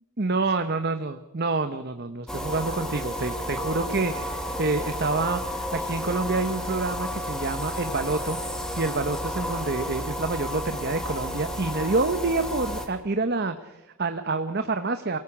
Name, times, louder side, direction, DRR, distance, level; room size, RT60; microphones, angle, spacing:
voice 1, 0.2-15.2, right 3 dB, 45° right, 8 dB, 1.0 m, -28 dB
sound 1, 2.3-12.9, left 1 dB, 5° left, 2.5 m, -32 dB
28.0 x 18.0 x 7.3 m, 1.0 s
head